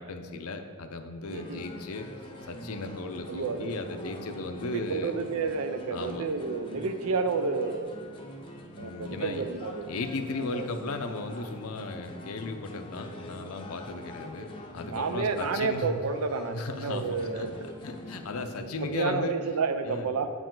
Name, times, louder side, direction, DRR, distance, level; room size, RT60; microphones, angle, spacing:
voice 1, 0.0-2.0 2.5-5.1 5.9-6.3 8.8-9.4 9.9-15.9 16.5-17.5 17.8-19.6 19.8-20.1, left 3 dB, 75° left, 7 dB, 0.6 m, -36 dB
sound 1, 1.2-18.6, left 1 dB, 25° left, 0.6 m, -45 dB
voice 2, 1.3-1.6 3.3-4.3 4.7-8.0 8.8-9.9 10.5-10.7 14.8-17.5 18.8-20.3, right 4 dB, 75° right, 8 dB, 0.5 m, -30 dB
8.2 x 4.9 x 3.8 m, 2.2 s
head